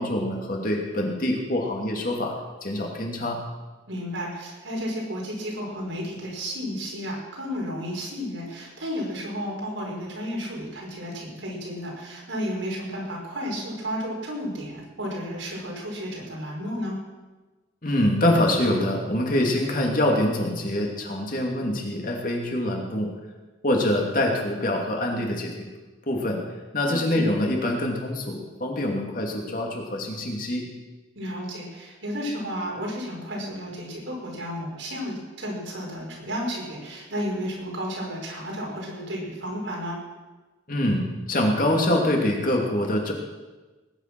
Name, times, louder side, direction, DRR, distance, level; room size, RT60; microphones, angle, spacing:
voice 1, 0.0-2.3 2.6-3.4 17.8-23.1 23.6-25.7 26.1-26.4 26.7-30.7 40.7-43.1, left 1 dB, 45° left, 0 dB, 2.7 m, -25 dB
voice 2, 3.9-17.0 26.8-27.2 31.2-40.0, equal, 85° right, -2 dB, 5.2 m, -32 dB
19.5 x 9.8 x 6.2 m, 1.2 s
head